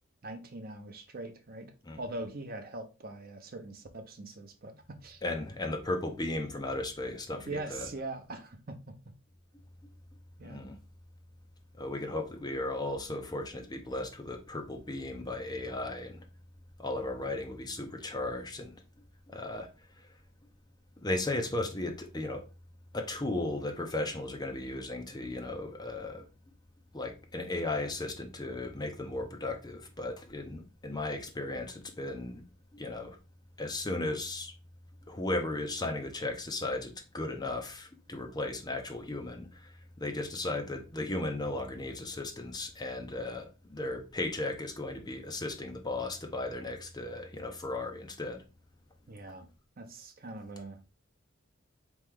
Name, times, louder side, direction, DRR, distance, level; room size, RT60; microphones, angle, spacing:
voice 1, 0.2-5.2 7.5-8.9 10.4-10.6 49.1-49.5 49.8-50.8, right 2 dB, 45° right, 0.7 m, -42 dB
voice 2, 5.2-7.9 10.4-10.8 11.8-16.2 16.8-18.8 19.3-19.7 20.0-20.1 21.0-22.4 22.9-26.2 26.9-32.4 32.7-33.2 33.6-34.5 35.1-48.4, left 2 dB, 20° left, 0.7 m, -36 dB
4.3 x 3.1 x 3.6 m
head